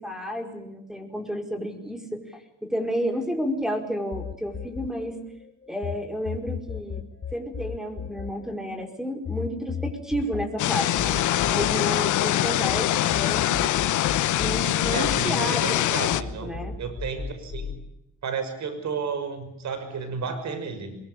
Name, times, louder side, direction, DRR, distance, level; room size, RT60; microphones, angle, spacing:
voice 1, 0.0-5.2 5.7-7.0 7.3-11.2 11.5-13.9 14.4-16.8, equal, ahead, 5 dB, 5.0 m, -31 dB
sound 1, 4.1-5.9 6.2-12.8 13.1-15.8 16.1-17.8, left 6 dB, 50° left, 3.5 m, -35 dB
sound 2, 10.6-16.2, left 13 dB, 75° left, 1.1 m, -23 dB
voice 2, 14.9-17.7 18.2-20.9, right 5 dB, 65° right, 9 dB, 6.1 m, -32 dB
23.0 x 21.5 x 8.5 m, 0.80 s
cardioid pair, 90°, 30 cm